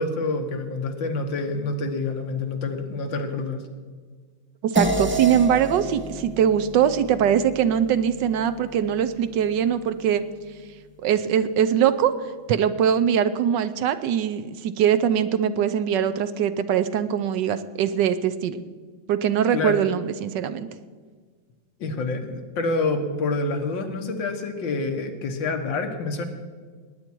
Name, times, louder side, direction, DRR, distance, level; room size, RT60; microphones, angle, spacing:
voice 1, 0.0-3.6 19.5-19.8 21.8-26.2, left 3 dB, 75° left, 5 dB, 2.0 m, -27 dB
voice 2, 4.6-10.2 11.0-12.1 12.5-18.7 19.1-20.7, right 9 dB, 75° right, 12 dB, 1.2 m, -22 dB
sound 1, 4.8-9.5, right 2 dB, 10° right, 0.8 m, -30 dB
19.0 x 9.5 x 4.5 m, 1.5 s
omnidirectional pair, 2.1 m